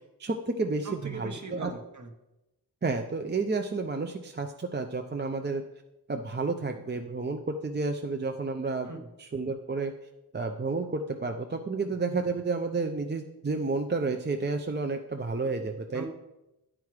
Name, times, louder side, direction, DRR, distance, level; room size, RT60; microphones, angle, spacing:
voice 1, 0.2-1.7 2.8-5.6 6.1-8.9 9.2-9.9 10.3-16.1, right 3 dB, 25° right, 4 dB, 0.5 m, -31 dB
voice 2, 0.8-2.1 8.8-9.1 11.8-11.9 15.9-16.1, right 3 dB, 45° right, 5 dB, 1.1 m, -40 dB
8.9 x 4.8 x 4.7 m, 0.96 s
wide cardioid pair, 60°, 40 cm